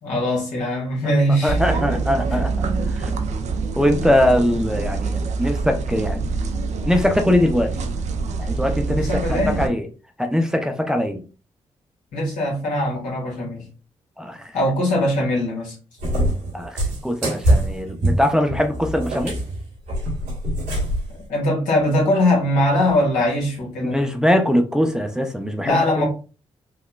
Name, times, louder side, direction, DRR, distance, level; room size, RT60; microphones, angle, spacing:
voice 1, 0.0-2.0 2.3-2.5 8.9-9.6 12.1-13.6 14.5-15.7 21.3-24.0 25.6-26.1, left 1 dB, 80° left, 1.5 m, -21 dB
voice 2, 1.4-3.1 3.8-6.2 6.9-7.8 8.4-9.2 9.5-9.9 10.2-11.3 14.2-14.6 16.5-19.4 23.8-26.0, left 1 dB, 5° right, 0.5 m, -21 dB
sound 1, 1.5-9.7, right 4 dB, 60° right, 0.5 m, -25 dB
Cat, 16.0-21.1, right 1 dB, 85° right, 1.4 m, -23 dB
3.9 x 2.1 x 2.2 m
supercardioid pair, 45°, 13 cm